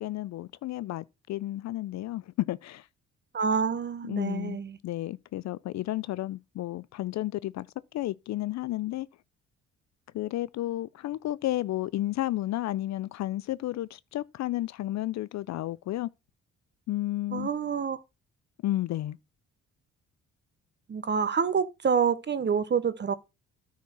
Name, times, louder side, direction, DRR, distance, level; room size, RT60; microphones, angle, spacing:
voice 1, 0.0-2.9 4.1-4.6 4.8-7.7 7.9-9.1 10.1-16.1 16.9-17.5 18.6-19.2, left 15 dB, 65° left, 0.5 m, -32 dB
voice 2, 3.3-4.8 17.3-18.0 20.9-23.1, right 6 dB, 35° right, 0.9 m, -27 dB
9.6 x 4.3 x 6.1 m
cardioid pair, 90°, 30 cm